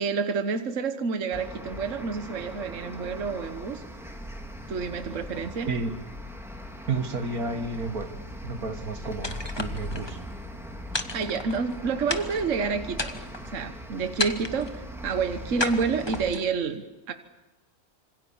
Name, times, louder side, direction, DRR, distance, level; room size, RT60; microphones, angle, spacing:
voice 1, 0.0-3.8 4.7-5.7 11.1-13.2 13.5-17.1, right 5 dB, 55° right, 8 dB, 1.6 m, -29 dB
sound 1, 1.3-16.3, left 1 dB, ahead, 2.9 m, -40 dB
voice 2, 5.7-6.0 6.9-8.2 8.4-10.2, right 3 dB, 75° right, 8 dB, 2.2 m, -31 dB
sound 2, 9.2-10.1 10.9-11.7 12.1-12.5 12.9-13.5 14.2-14.8 15.6-16.5, left 2 dB, 20° left, 1.3 m, -32 dB
26.5 x 26.0 x 7.3 m, 1.0 s
omnidirectional pair, 1.6 m